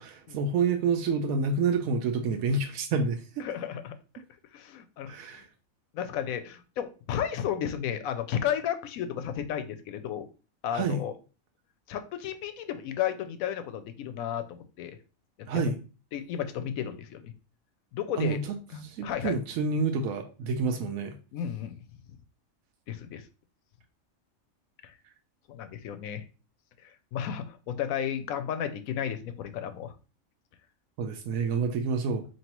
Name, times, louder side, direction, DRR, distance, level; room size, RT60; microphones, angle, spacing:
voice 1, 0.0-3.5 5.1-5.5 10.7-11.0 15.5-15.8 18.2-18.6 18.8-21.2 31.0-32.3, right 4 dB, 90° right, 5 dB, 1.0 m, -28 dB
voice 2, 3.4-4.0 4.5-5.4 5.9-10.3 10.6-11.1 11.9-15.0 15.5-15.6 16.1-17.3 17.9-18.4 18.7-19.3 21.3-21.8 22.9-23.2 24.8-24.9 25.5-26.3 26.8-29.9, left 9 dB, 90° left, 10 dB, 1.0 m, -33 dB
4.5 x 3.0 x 2.9 m, 0.34 s
omnidirectional pair, 1.4 m